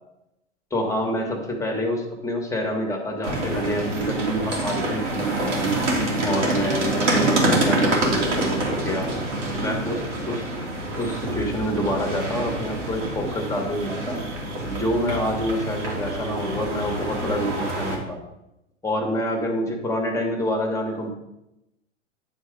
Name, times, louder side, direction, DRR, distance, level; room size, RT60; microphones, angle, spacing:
voice 1, 0.7-5.8 6.2-9.1 9.6-10.4 11.0-14.2 14.6-18.2 18.8-21.1, equal, 10° left, 2 dB, 1.9 m, -27 dB
sound 1, 3.2-18.0, right 2 dB, 75° right, 3.0 m, -26 dB
10.5 x 4.5 x 5.2 m, 0.89 s
figure-of-eight pair, 95°, 37 cm